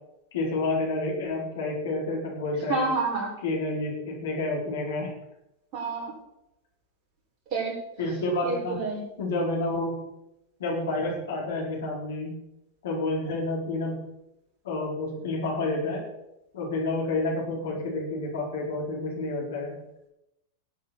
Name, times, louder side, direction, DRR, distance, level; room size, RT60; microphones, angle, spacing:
voice 1, 0.3-2.9 3.4-5.1 8.0-8.8 9.2-10.0 10.6-12.4 12.8-14.0 14.6-16.0 16.5-19.7, left 2 dB, 60° left, -2 dB, 4.7 m, -29 dB
voice 2, 2.7-3.3 5.7-6.1 7.5-7.8 8.4-9.0, right 3 dB, 35° right, -3 dB, 5.9 m, -28 dB
19.5 x 8.5 x 4.4 m, 0.87 s
figure-of-eight pair, 90°, 0 cm